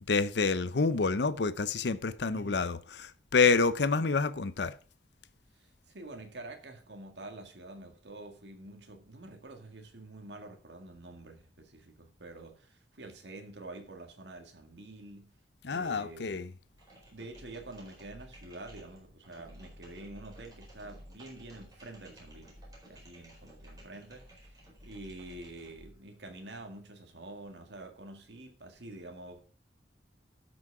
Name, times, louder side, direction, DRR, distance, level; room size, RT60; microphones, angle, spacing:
voice 1, 0.1-4.8 15.6-16.5, left 4 dB, 75° left, 0.7 m, -28 dB
voice 2, 2.3-2.7 5.6-15.3 15.6-16.5 17.1-22.5 22.9-24.5 24.8-29.4, right 2 dB, 80° right, 2.0 m, -47 dB
sound 1, 16.7-26.0, equal, 20° right, 4.4 m, -53 dB
12.5 x 6.2 x 4.7 m
head